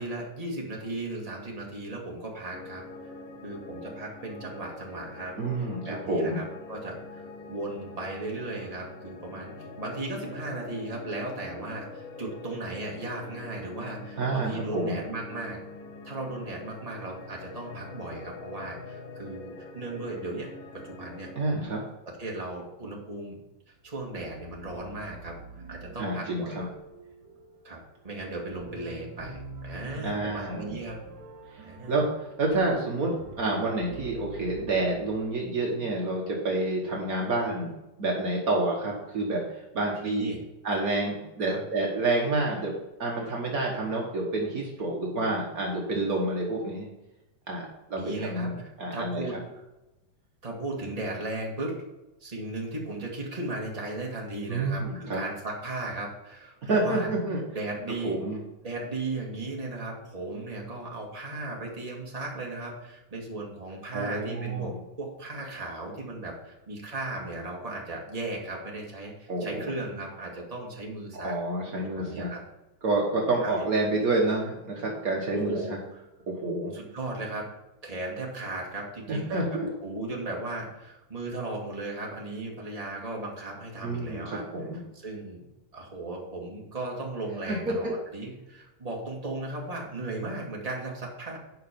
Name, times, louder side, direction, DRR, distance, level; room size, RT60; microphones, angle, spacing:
voice 1, 0.0-2.8 3.4-15.6 16.0-21.3 22.2-23.4 23.8-25.4 25.7-26.7 27.6-27.8 28.0-31.0 31.6-32.0 40.0-40.4 41.4-41.6 47.9-49.6 50.4-51.8 52.2-57.1 57.5-58.2 58.6-71.3 71.9-72.4 73.4-73.5 75.3-76.0 76.7-77.5 77.8-84.4 84.9-85.4 85.7-91.4, right 2 dB, 15° right, -2 dB, 1.3 m, -36 dB
sound 1, 2.5-21.6, left 3 dB, 65° left, 1.8 m, -44 dB
voice 2, 5.4-6.4 14.2-15.0 21.3-21.8 26.0-26.7 30.0-30.7 31.5-40.3 40.6-42.7 43.0-46.9 47.5-48.0 48.3-49.2 54.5-55.2 56.6-57.4 58.0-58.4 63.9-64.8 69.3-69.7 71.1-72.3 72.8-75.8 76.3-76.8 79.1-79.7 83.8-84.8 87.5-87.9, right 2 dB, 75° right, -2 dB, 0.8 m, -29 dB
sound 2, 23.8-35.9, right 3 dB, 50° right, 1.8 m, -45 dB
10.5 x 5.2 x 5.2 m, 1.0 s
omnidirectional pair, 3.5 m